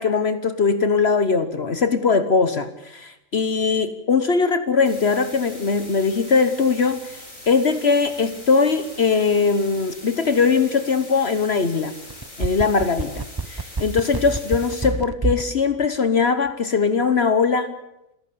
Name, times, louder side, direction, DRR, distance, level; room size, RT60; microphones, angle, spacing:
voice 1, 0.0-7.2 7.5-11.9 12.4-17.8, left 5 dB, 55° left, 11 dB, 1.3 m, -20 dB
sound 1, 4.9-14.9, left 1 dB, 80° left, 6.4 m, -42 dB
sound 2, 12.1-15.5 15.8-15.9, right 3 dB, 20° right, 0.6 m, -26 dB
26.5 x 15.0 x 8.6 m, 0.87 s
omnidirectional pair, 1.4 m